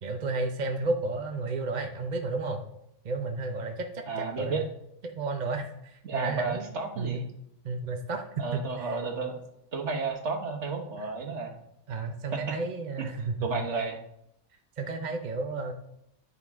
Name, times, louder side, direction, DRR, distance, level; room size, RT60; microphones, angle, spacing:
voice 1, 0.0-2.6 3.0-4.7 5.1-7.2 7.6-9.0 11.0-11.1 11.9-13.6 14.8-15.7, right 3 dB, 40° right, 4 dB, 0.8 m, -32 dB
voice 2, 4.1-4.6 6.0-7.2 8.4-9.4 9.7-11.5 12.3-12.6 13.4-14.0, right 4 dB, 55° right, 3 dB, 1.5 m, -32 dB
9.9 x 9.1 x 3.6 m, 0.78 s
omnidirectional pair, 1.4 m